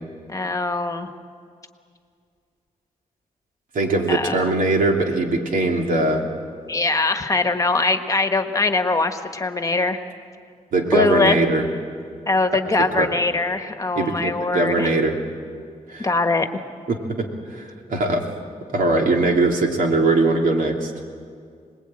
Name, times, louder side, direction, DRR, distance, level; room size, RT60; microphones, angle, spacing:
voice 1, 0.3-1.1 4.1-4.4 6.7-10.0 10.9-11.4 12.3-14.9 16.0-16.5, left 3 dB, 25° left, 7 dB, 1.4 m, -22 dB
voice 2, 3.7-6.2 10.7-11.6 13.0-13.1 14.0-15.2 15.9-16.1 16.9-18.3 18.7-20.9, right 2 dB, 90° right, 2 dB, 2.8 m, -21 dB
26.5 x 20.0 x 8.9 m, 2.2 s
wide cardioid pair, 115°, 14 cm